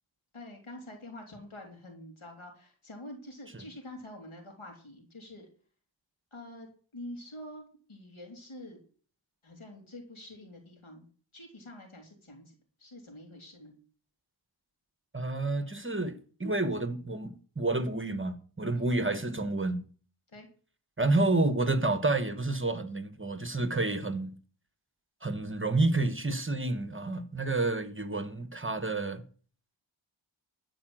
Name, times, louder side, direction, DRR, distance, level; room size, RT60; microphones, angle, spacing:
voice 1, 0.3-5.5 6.3-8.8 9.4-11.1 11.3-12.5 12.8-13.8 18.7-19.1 20.3-20.5, left 1 dB, 85° left, 3.5 m, -46 dB
voice 2, 15.1-19.8 21.0-24.3 25.2-29.2, right 2 dB, 25° right, 1.2 m, -29 dB
12.5 x 4.9 x 7.6 m
wide cardioid pair, 50°, 48 cm